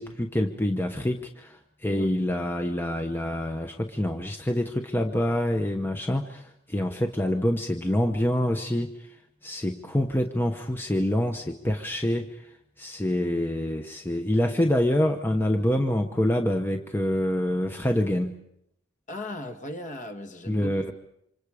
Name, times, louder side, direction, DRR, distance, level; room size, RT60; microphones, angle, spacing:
voice 1, 0.0-9.1 9.4-12.5 12.8-18.4 20.5-20.9, left 1 dB, 10° left, 4 dB, 1.0 m, -26 dB
voice 2, 19.1-20.9, left 1 dB, 35° left, 7 dB, 1.8 m, -37 dB
28.5 x 26.0 x 5.0 m, 0.76 s
head